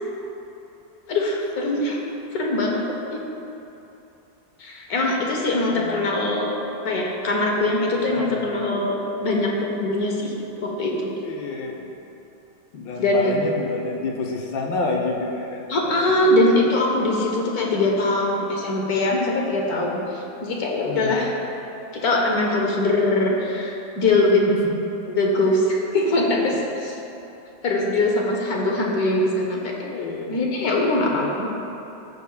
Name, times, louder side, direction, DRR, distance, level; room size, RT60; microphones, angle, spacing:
voice 1, 1.1-2.0 2.3-2.8 3.1-3.2 4.6-6.5 6.8-9.0 9.2-11.1 13.0-13.3 15.7-21.3 21.9-24.4 25.2-26.9 27.6-29.7 30.3-31.5, left 2 dB, 60° left, -1 dB, 1.3 m, -22 dB
voice 2, 5.7-6.3 8.2-8.8 11.2-11.9 12.7-16.3 20.8-21.3 24.4-24.7 26.5-26.6 29.8-30.4 31.1-31.4, left 3 dB, 85° left, -1 dB, 1.6 m, -30 dB
13.5 x 6.7 x 2.3 m, 2.9 s
omnidirectional pair, 1.9 m